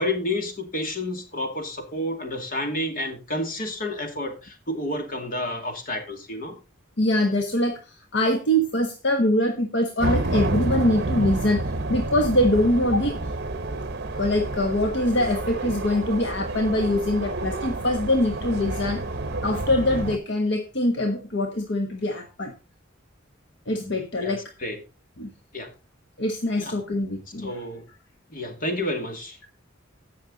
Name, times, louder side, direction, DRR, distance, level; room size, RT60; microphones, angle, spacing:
voice 1, 0.0-6.6 24.2-24.8 25.5-25.7 26.6-26.7 27.4-27.8 28.3-29.4, left 1 dB, 45° left, 4 dB, 2.4 m, -30 dB
voice 2, 7.0-11.6 11.9-13.2 14.1-19.0 19.4-22.5 23.7-24.4 25.2-25.3 26.2-27.6, left 1 dB, 60° left, 4 dB, 1.3 m, -23 dB
sound 1, 10.0-20.2, right 2 dB, 55° right, 1.1 m, -29 dB
16.0 x 6.3 x 4.0 m, 0.31 s
head